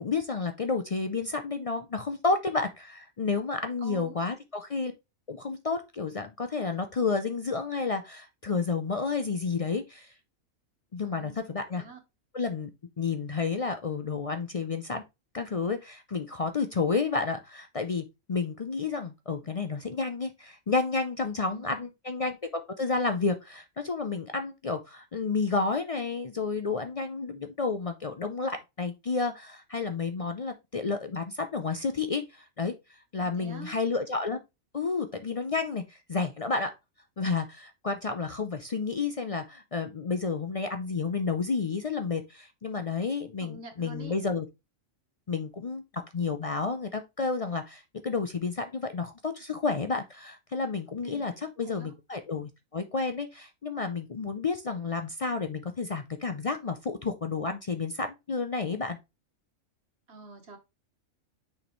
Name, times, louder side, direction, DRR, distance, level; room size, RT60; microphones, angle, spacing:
voice 1, 0.0-4.9 5.3-10.1 10.9-11.8 12.3-12.7 13.0-15.0 15.3-32.7 33.1-34.4 34.7-36.7 37.2-44.5 45.3-59.0, left 4 dB, 65° left, 0.3 m, -31 dB
voice 2, 3.8-4.2 11.0-11.4 11.7-12.0 21.4-21.9 33.2-33.7 43.4-44.2 51.0-51.2 51.6-51.9 60.1-60.6, right 3 dB, 50° right, 1.6 m, -46 dB
6.4 x 5.1 x 3.1 m
omnidirectional pair, 1.4 m